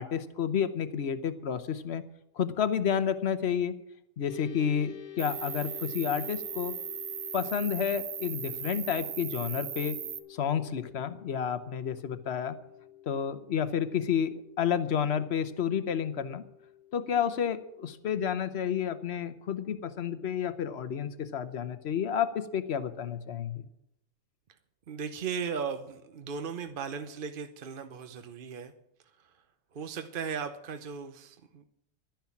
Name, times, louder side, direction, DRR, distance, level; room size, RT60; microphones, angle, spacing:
voice 1, 0.0-2.0 2.4-3.8 4.2-6.8 7.3-10.0 10.4-12.6 13.1-16.4 16.9-23.6, left 8 dB, 50° left, 12 dB, 1.1 m, -30 dB
sound 1, 4.3-19.0, left 11 dB, 85° left, 2.0 m, -50 dB
Cricket, 5.2-10.2, right 9 dB, 65° right, 1.2 m, -38 dB
voice 2, 24.9-28.7 29.2-29.4 29.7-31.6, right 6 dB, 45° right, 8 dB, 0.8 m, -37 dB
12.0 x 10.5 x 7.1 m, 0.81 s
omnidirectional pair, 1.5 m